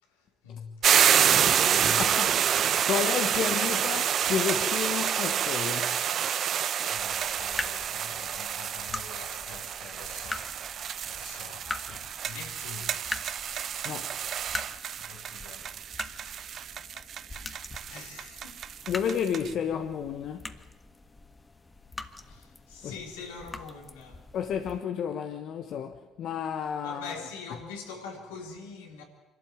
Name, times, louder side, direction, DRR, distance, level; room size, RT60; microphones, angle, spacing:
voice 1, 0.0-2.1 6.9-10.7 11.0-11.7 12.2-13.2 15.0-15.7 16.9-17.1 17.9-18.7 22.2-24.3 26.8-29.0, left 5 dB, 90° left, 3.7 m, -44 dB
sound 1, 0.8-19.5, right 9 dB, 60° right, 0.8 m, -28 dB
voice 2, 2.0-2.4 2.9-6.0 11.9-12.0 13.8-14.2 18.9-20.4 22.8-23.0 24.3-27.2, left 8 dB, 65° left, 1.2 m, -31 dB
sound 2, 7.0-24.8, left 3 dB, 25° left, 1.5 m, -43 dB
26.0 x 12.5 x 9.1 m
hypercardioid pair, 60°, 0 cm